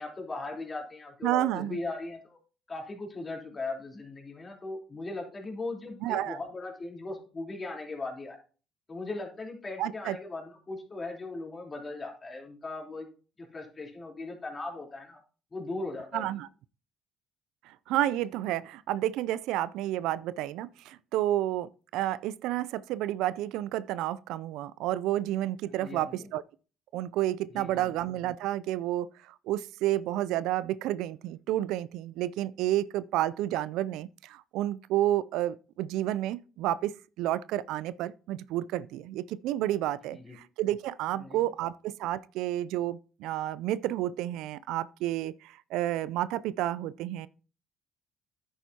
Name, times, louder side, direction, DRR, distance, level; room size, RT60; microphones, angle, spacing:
voice 1, 0.0-2.4 2.7-8.4 8.9-13.1 13.4-15.2 15.5-16.4 25.7-26.3 27.5-27.9 40.1-40.4 41.1-41.4, left 2 dB, 30° left, 3.4 m, -38 dB
voice 2, 1.2-1.8 6.0-6.4 9.8-10.2 16.1-16.5 17.7-26.4 26.9-47.3, right 13 dB, 75° right, 0.3 m, -30 dB
10.0 x 8.9 x 2.8 m
hypercardioid pair, 55°, 0 cm